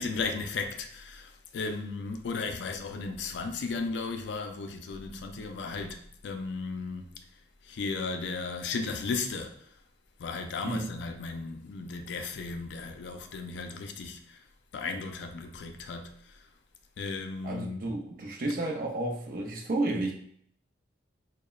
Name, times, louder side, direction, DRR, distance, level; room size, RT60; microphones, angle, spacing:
voice 1, 0.0-7.1 7.7-9.5 10.2-14.4 14.7-16.2 17.0-17.9, left 4 dB, 70° left, 0.3 m, -35 dB
voice 2, 17.4-20.1, right 2 dB, 45° right, 0.4 m, -31 dB
2.9 x 2.1 x 2.2 m
head